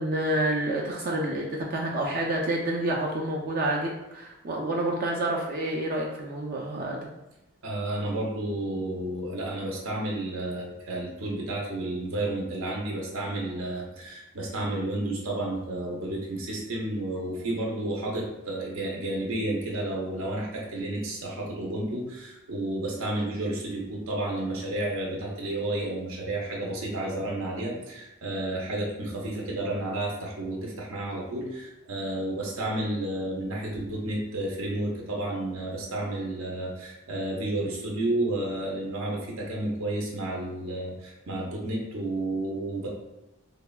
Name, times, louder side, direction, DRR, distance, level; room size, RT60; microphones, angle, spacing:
voice 1, 0.0-7.0, right 1 dB, 45° right, -1 dB, 0.3 m, -28 dB
voice 2, 7.6-42.9, right 1 dB, 80° right, -2 dB, 0.6 m, -31 dB
3.3 x 2.1 x 2.3 m, 0.99 s
head